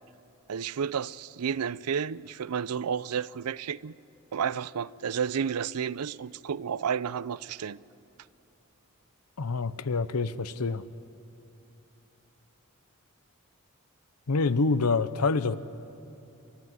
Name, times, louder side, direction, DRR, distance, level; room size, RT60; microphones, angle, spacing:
voice 1, 0.5-3.9 4.3-7.8, right 7 dB, 85° right, 0.5 m, -31 dB
voice 2, 9.4-10.8 14.3-15.6, left 4 dB, 90° left, 0.8 m, -26 dB
29.0 x 12.5 x 9.5 m
head